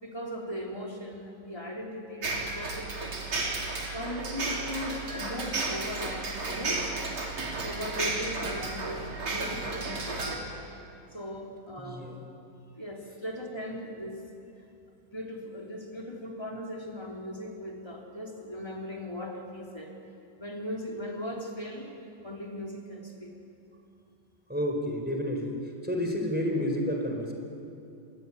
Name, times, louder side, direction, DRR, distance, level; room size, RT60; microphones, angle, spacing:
voice 1, 0.0-3.3 3.9-7.0 7.6-10.5 11.1-12.1 12.7-14.2 15.1-19.9 20.4-21.9 22.2-23.3, left 1 dB, 10° left, -1 dB, 3.6 m, -38 dB
sound 1, 2.2-10.4, right 3 dB, 85° right, 4.0 m, -33 dB
voice 2, 11.8-12.1 24.5-25.6 25.8-27.3, left 1 dB, 5° right, 2 dB, 4.1 m, -30 dB
27.0 x 21.0 x 10.0 m, 2.6 s
omnidirectional pair, 2.2 m